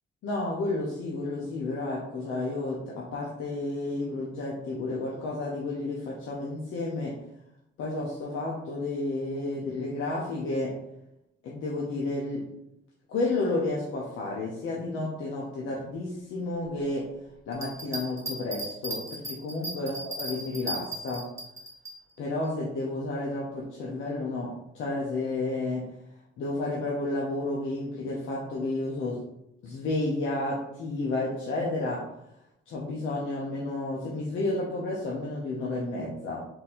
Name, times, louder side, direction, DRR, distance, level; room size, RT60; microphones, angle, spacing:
voice 1, 0.2-7.2 7.8-10.8 11.4-12.5 13.1-17.1 17.5-21.3 22.2-25.9 26.4-29.2 29.6-32.1 32.7-36.5, left 2 dB, 85° left, -4 dB, 0.8 m, -31 dB
sound 1, 17.5-21.9, right 1 dB, 15° right, 0.9 m, -36 dB
3.9 x 2.7 x 4.2 m, 0.82 s
cardioid pair, 115°, 20 cm